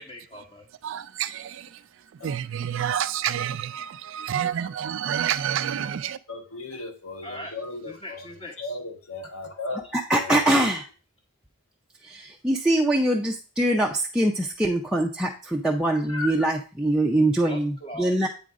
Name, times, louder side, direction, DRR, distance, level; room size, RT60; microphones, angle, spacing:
voice 1, 0.0-0.7 7.2-7.5 7.8-8.7 10.3-10.7 17.4-18.1, left 1 dB, 25° left, 1.0 m, -40 dB
voice 2, 0.8-1.8 2.2-6.2, right 9 dB, 60° right, 0.3 m, -28 dB
voice 3, 6.3-8.2 8.6-9.8 10.2-10.4 16.1-16.3, left 2 dB, 75° left, 1.2 m, -35 dB
voice 4, 9.9-10.8 12.0-18.3, right 1 dB, 5° right, 0.5 m, -23 dB
8.4 x 3.8 x 4.7 m
head